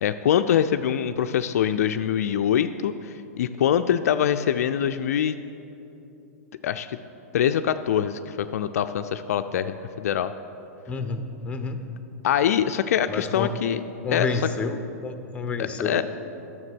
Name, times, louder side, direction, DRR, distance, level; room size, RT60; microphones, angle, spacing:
voice 1, 0.0-5.4 6.6-7.0 7.3-10.3 12.2-13.8 14.1-14.4 15.6-16.0, left 9 dB, 70° left, 10 dB, 0.4 m, -24 dB
voice 2, 10.9-11.8 13.1-13.5 14.0-16.0, left 4 dB, 15° left, 8 dB, 0.8 m, -29 dB
9.7 x 7.2 x 6.1 m, 2.9 s
hypercardioid pair, 110°, 9 cm